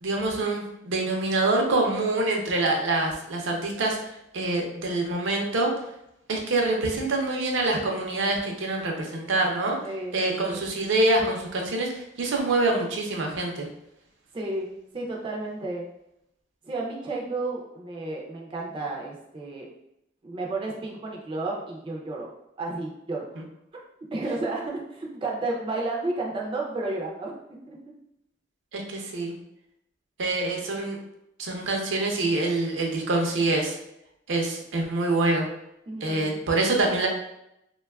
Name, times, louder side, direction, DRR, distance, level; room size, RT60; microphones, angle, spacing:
voice 1, 0.0-4.0 4.3-5.7 6.3-9.8 10.1-13.7 28.7-29.3 30.2-31.0 31.4-33.8 34.3-35.5 36.0-37.1, right 2 dB, 80° right, 1 dB, 0.5 m, -25 dB
voice 2, 9.8-10.6 14.3-15.9 16.6-19.7 20.2-22.3 22.6-23.4 24.1-27.4 27.7-27.8 35.9-36.4, right 2 dB, 25° right, -2 dB, 0.3 m, -32 dB
2.9 x 2.2 x 2.2 m, 0.81 s
head